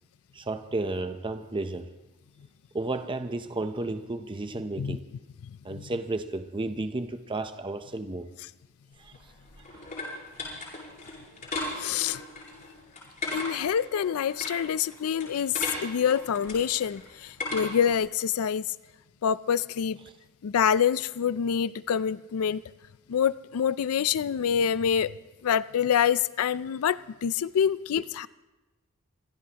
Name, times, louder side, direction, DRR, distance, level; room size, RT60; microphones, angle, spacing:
voice 1, 0.3-1.9 2.7-5.0 5.6-8.3 9.0-9.1 9.7-9.8, right 2 dB, 25° right, 8 dB, 0.7 m, -32 dB
sound 1, 9.0-18.0, left 2 dB, 40° left, 7.2 m, -37 dB
voice 2, 11.8-12.2 13.3-18.7 19.2-20.0 20.4-22.6 23.1-25.1 25.4-28.3, left 8 dB, 70° left, 17 dB, 0.4 m, -26 dB
25.5 x 16.5 x 2.9 m, 1.1 s
head